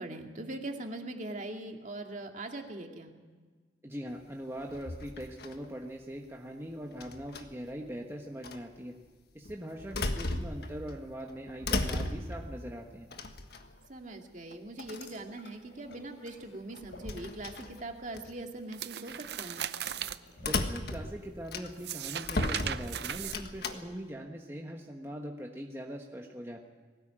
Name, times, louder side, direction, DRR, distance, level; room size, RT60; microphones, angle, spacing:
voice 1, 0.0-3.1 13.9-19.7, right 2 dB, 45° right, 3 dB, 2.3 m, -41 dB
voice 2, 3.8-8.9 9.3-13.1 20.4-26.6, equal, 15° right, 1 dB, 1.3 m, -41 dB
sound 1, 4.7-5.7 7.0-7.7 8.4-8.6 9.4-10.9 11.3-12.5 13.1-13.9 14.5-14.6 14.8-15.2 16.7-18.3 18.8-19.1 20.4-21.9 22.2-23.7, left 2 dB, 60° left, 1.5 m, -35 dB
sound 2, 14.9-17.8 18.1-18.4 19.5-23.9, left 2 dB, 80° left, 7.7 m, -56 dB
sound 3, 18.7-20.2 21.7-24.0, right 9 dB, 60° right, 0.7 m, -37 dB
21.0 x 18.0 x 8.9 m, 1.4 s
head